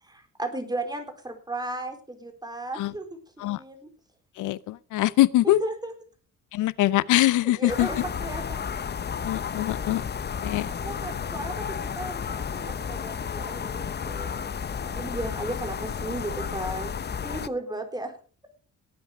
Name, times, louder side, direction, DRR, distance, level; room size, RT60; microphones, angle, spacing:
voice 1, 0.0-3.9 5.4-5.9 7.4-8.6 10.7-14.5 14.8-16.9 17.2-18.1, right 2 dB, 15° right, 3.9 m, -35 dB
voice 2, 4.4-5.6 6.5-7.9 9.2-10.0 10.4-10.7, left 15 dB, 85° left, 0.7 m, -23 dB
sound 1, 7.7-17.5, left 7 dB, 35° left, 0.8 m, -32 dB
18.0 x 9.0 x 4.9 m
cardioid pair, 90°, 30 cm